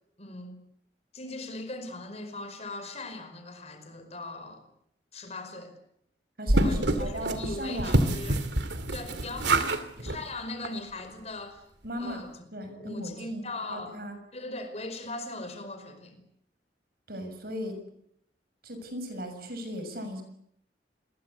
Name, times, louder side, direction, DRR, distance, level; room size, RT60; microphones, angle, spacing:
voice 1, 0.2-0.6 1.1-4.6 5.1-5.7 6.6-8.5 8.9-11.7 12.0-12.3 12.7-14.0 14.3-16.2, left 2 dB, 35° left, 8 dB, 5.2 m, -39 dB
voice 2, 6.4-8.0 9.5-9.7 11.8-12.2 12.5-14.2 17.1-17.8 18.6-20.2, equal, 55° right, 8 dB, 6.6 m, -37 dB
sound 1, 6.5-9.8 10.1-10.2 10.6-10.7 11.0-11.1, right 2 dB, 75° right, 2.6 m, -26 dB
28.5 x 22.0 x 8.4 m, 0.73 s
head